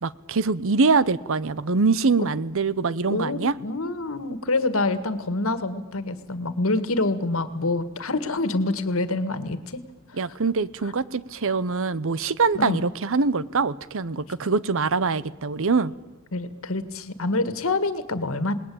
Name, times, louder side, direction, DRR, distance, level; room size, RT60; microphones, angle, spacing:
voice 1, 0.0-3.5 10.2-15.9, right 4 dB, 65° right, 18 dB, 0.8 m, -23 dB
voice 2, 3.1-9.8 10.1-10.2 12.5-12.8 16.3-18.5, left 2 dB, 70° left, 12 dB, 1.8 m, -26 dB
28.5 x 20.0 x 8.6 m, 1.1 s
head